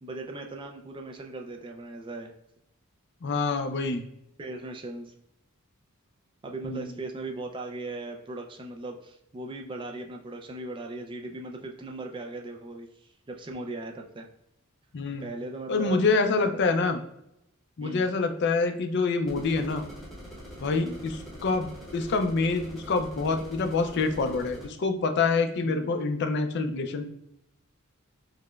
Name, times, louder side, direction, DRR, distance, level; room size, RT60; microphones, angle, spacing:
voice 1, 0.0-2.3 4.4-5.1 6.4-14.3 15.2-16.1 16.4-16.9 17.8-18.1 20.7-21.0 25.6-25.9, right 2 dB, 25° right, 3 dB, 0.3 m, -38 dB
voice 2, 3.2-4.0 6.6-6.9 14.9-15.2 15.7-17.0 17.8-19.8 20.6-21.2 21.4-27.0, left 4 dB, 50° left, 7 dB, 0.4 m, -26 dB
sound 1, 19.3-24.7, equal, ahead, 0.8 m, -44 dB
4.8 x 2.1 x 2.3 m, 0.80 s
head